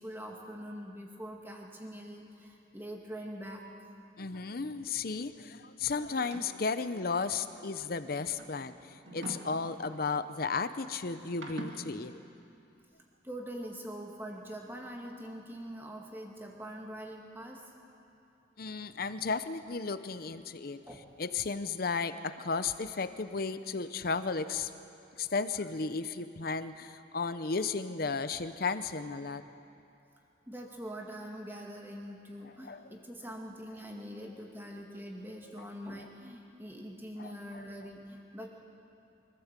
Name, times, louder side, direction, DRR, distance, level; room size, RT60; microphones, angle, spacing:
voice 1, 0.0-3.9 13.2-17.6 20.8-21.0 30.5-38.5, equal, 10° right, 0 dB, 2.0 m, -43 dB
voice 2, 4.2-12.2 18.6-20.8 21.2-24.7 25.2-29.4 32.4-32.9 37.2-37.6, left 4 dB, 50° left, 12 dB, 0.7 m, -34 dB
sound 1, 6.1-6.7 7.7-10.1 11.2-11.9, right 2 dB, 75° right, 1.9 m, -45 dB
24.0 x 14.5 x 7.5 m, 2.7 s
head